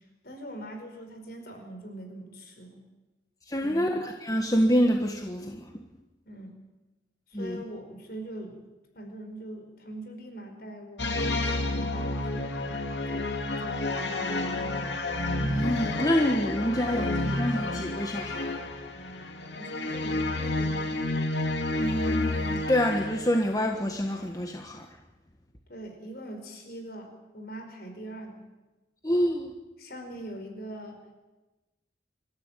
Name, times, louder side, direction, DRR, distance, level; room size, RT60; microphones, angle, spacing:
voice 1, 0.2-2.8 3.6-4.0 6.2-6.6 7.3-8.7 8.9-13.3 13.6-14.6 19.6-21.0 25.7-28.4 29.8-31.0, right 1 dB, 55° left, 5 dB, 5.0 m, -42 dB
voice 2, 3.5-5.7 7.3-7.6 15.4-18.6 21.8-24.9 29.0-29.5, equal, 20° left, 3 dB, 1.5 m, -27 dB
sound 1, 11.0-23.5, left 2 dB, 70° left, 2.4 m, -30 dB
26.5 x 14.5 x 9.1 m, 1.1 s
head